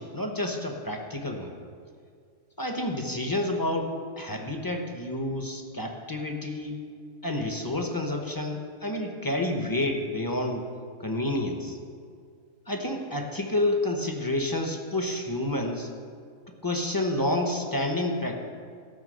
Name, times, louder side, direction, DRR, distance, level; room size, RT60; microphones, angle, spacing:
voice 1, 0.0-1.5 2.6-6.8 7.2-10.7 11.0-11.8 12.7-15.9 16.6-18.4, left 1 dB, 20° left, 3 dB, 0.8 m, -29 dB
13.0 x 5.8 x 7.7 m, 2.2 s
omnidirectional pair, 1.4 m